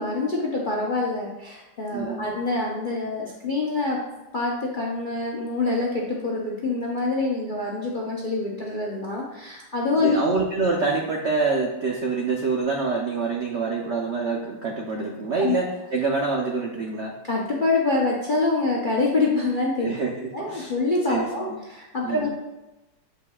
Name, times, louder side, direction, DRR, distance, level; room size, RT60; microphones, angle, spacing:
voice 1, 0.0-4.0 4.3-10.2 15.4-15.6 17.2-19.9 20.3-22.3, left 3 dB, 55° left, -3 dB, 0.5 m, -25 dB
voice 2, 1.9-2.2 10.0-17.1 19.8-20.1 20.5-20.7 21.1-21.3 22.0-22.3, right 4 dB, 85° right, -1 dB, 0.5 m, -26 dB
7.9 x 5.3 x 2.3 m, 1.0 s
omnidirectional pair, 2.1 m